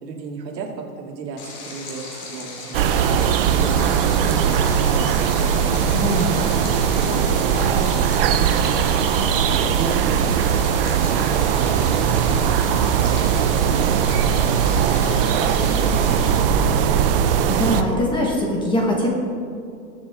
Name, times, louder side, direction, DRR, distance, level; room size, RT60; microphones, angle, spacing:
voice 1, 0.0-3.0 3.4-4.8 5.1-5.9 6.5-10.4 11.0-16.2, right 4 dB, 80° right, 0 dB, 2.5 m, -35 dB
Stream, 1.4-16.4, left 3 dB, 30° left, 2.6 m, -37 dB
sound 1, 2.7-17.8, right 8 dB, 35° right, 0.5 m, -19 dB
voice 2, 5.9-6.4 17.5-19.1, equal, 10° left, -1 dB, 1.1 m, -22 dB
Race car auto racing / Accelerating revving vroom, 12.7-17.9, left 1 dB, 45° left, 2.4 m, -37 dB
21.5 x 7.3 x 3.6 m, 2.4 s
supercardioid pair, 155°, 49 cm